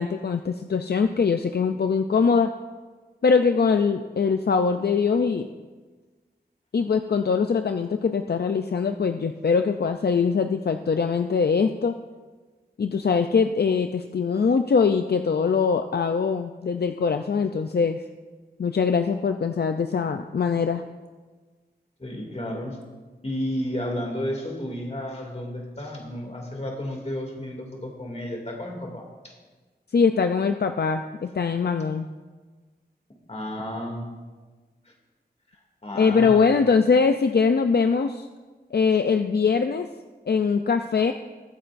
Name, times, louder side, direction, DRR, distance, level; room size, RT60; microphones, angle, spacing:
voice 1, 0.0-2.5 3.2-5.5 6.7-11.9 12.8-18.0 18.6-20.8 29.9-32.1 36.0-38.3 38.7-39.9 40.3-41.1, left 5 dB, 70° left, 7 dB, 0.5 m, -22 dB
voice 2, 22.0-22.8 23.2-29.4 33.3-34.1 34.9-35.0 35.8-36.5, left 1 dB, 40° left, 0 dB, 2.5 m, -32 dB
22.0 x 8.6 x 2.6 m, 1.3 s
wide cardioid pair, 55°, 18 cm